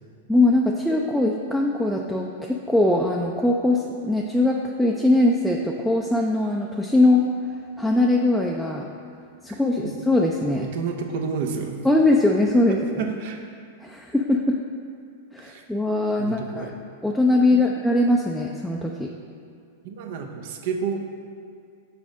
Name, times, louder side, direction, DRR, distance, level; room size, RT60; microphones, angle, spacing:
voice 1, 0.3-7.3 7.8-8.9 9.4-10.7 11.8-13.1 13.8-14.6 15.3-16.7 17.0-19.1, left 2 dB, ahead, -1 dB, 0.4 m, -21 dB
voice 2, 9.5-9.9 10.6-11.8 12.7-13.4 15.4-15.6 16.2-16.7 19.8-21.0, right 5 dB, 60° right, 3 dB, 0.7 m, -30 dB
6.0 x 4.1 x 4.9 m, 2.3 s
hypercardioid pair, 105°, 0 cm